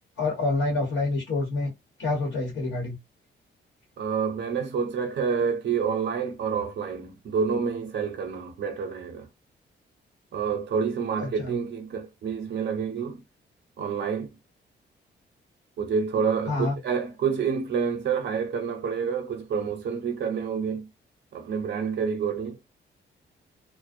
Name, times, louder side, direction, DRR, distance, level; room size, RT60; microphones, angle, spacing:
voice 1, 0.2-1.7 2.0-2.9 11.2-11.5 16.5-16.8, left 2 dB, 70° left, 1.0 m, -27 dB
voice 2, 4.0-9.3 10.3-13.2 13.8-14.3 15.8-20.9 21.3-22.6, right 6 dB, 65° right, 0.6 m, -28 dB
2.5 x 2.0 x 2.4 m
wide cardioid pair, 170°, 19 cm